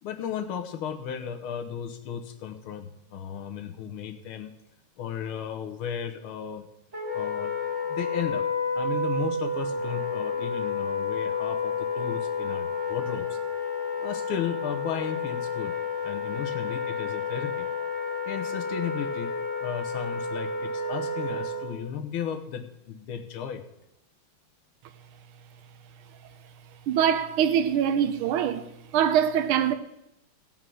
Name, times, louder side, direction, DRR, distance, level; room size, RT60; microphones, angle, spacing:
voice 1, 0.0-4.5 5.0-6.7 7.1-7.6 7.9-8.5 8.8-13.4 14.0-15.8 16.0-17.7 18.3-19.4 19.6-23.7, left 8 dB, 80° left, 1.9 m, -35 dB
Wind instrument woodwind instrument, 6.9-21.8, left 4 dB, 35° right, 2.7 m, -30 dB
voice 2, 26.9-28.6 28.9-29.7, right 9 dB, 85° right, 1.6 m, -23 dB
16.0 x 5.6 x 6.2 m
omnidirectional pair, 2.3 m